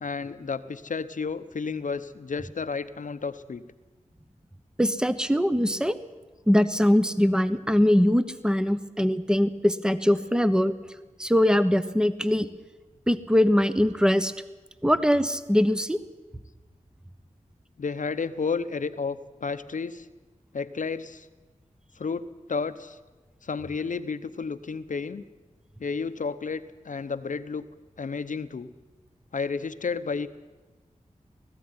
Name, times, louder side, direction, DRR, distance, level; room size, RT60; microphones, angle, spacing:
voice 1, 0.0-3.6 17.8-20.1 20.5-21.3 22.0-23.0 23.4-25.2 25.8-27.6 28.0-28.7 29.3-30.3, left 5 dB, 75° left, 12 dB, 0.9 m, -32 dB
voice 2, 4.8-6.0 6.5-10.7 11.2-12.5 13.1-14.3 14.8-16.0, equal, 5° right, 12 dB, 1.1 m, -22 dB
19.5 x 14.5 x 9.7 m, 1.2 s
wide cardioid pair, 65°, 13 cm